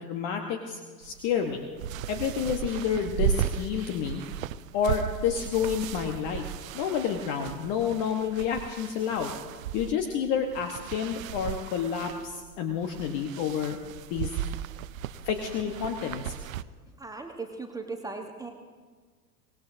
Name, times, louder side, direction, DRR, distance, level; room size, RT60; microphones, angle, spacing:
voice 1, 0.0-1.7 2.1-4.2 4.7-6.4 6.7-9.3 9.7-13.8 14.1-14.4 15.2-16.3, left 7 dB, 40° left, 5 dB, 1.2 m, -29 dB
sound 1, 1.0-16.6, right 9 dB, 60° right, 0.6 m, -36 dB
voice 2, 16.9-18.5, right 3 dB, 10° right, 3 dB, 1.2 m, -38 dB
24.0 x 18.5 x 2.7 m, 1.5 s
figure-of-eight pair, 85°, 47 cm